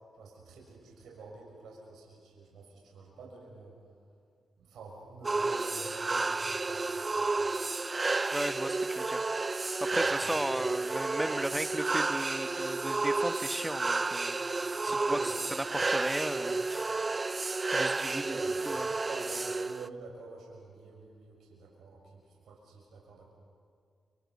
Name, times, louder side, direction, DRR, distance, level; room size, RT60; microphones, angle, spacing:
voice 1, 0.1-3.8 4.6-6.8 7.1-7.3 10.0-10.4 14.7-15.3 18.0-18.6 18.9-23.3, right 3 dB, 75° right, -2 dB, 6.4 m, -48 dB
sound 1, 5.2-19.9, right 3 dB, 35° right, 0.5 m, -31 dB
voice 2, 8.3-9.2 9.8-14.4 14.8-16.9 17.7-18.4 18.6-18.9, right 1 dB, 10° right, 10 dB, 1.6 m, -35 dB
30.0 x 28.0 x 5.6 m, 2.2 s
supercardioid pair, 40°, 0 cm